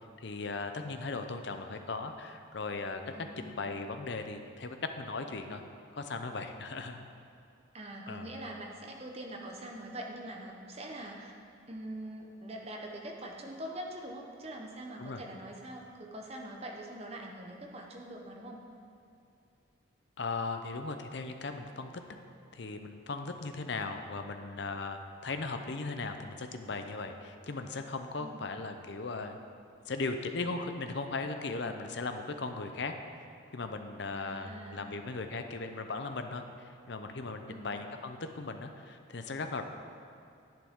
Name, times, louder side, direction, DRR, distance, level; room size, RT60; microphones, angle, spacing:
voice 1, 0.2-5.6 5.9-7.0 8.1-8.3 15.0-15.2 20.2-21.9 22.5-29.4 29.9-32.9 33.5-39.6, left 3 dB, 55° left, 6 dB, 0.6 m, -38 dB
voice 2, 3.1-3.5 7.7-11.3 11.7-18.6 28.2-28.5 34.1-34.9 37.5-37.8, right 1 dB, 30° right, 1 dB, 0.9 m, -43 dB
10.5 x 8.7 x 3.7 m, 2.7 s
head